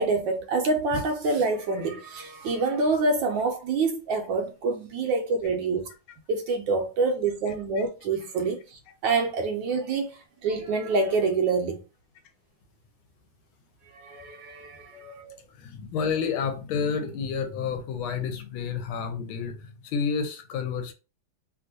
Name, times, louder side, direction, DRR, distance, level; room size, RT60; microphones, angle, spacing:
voice 1, 0.0-5.9 6.3-11.8 14.0-15.4, right 3 dB, 75° right, 1.2 m, -26 dB
voice 2, 15.5-20.9, left 6 dB, 80° left, 1.4 m, -30 dB
3.4 x 2.4 x 2.7 m
omnidirectional pair, 2.3 m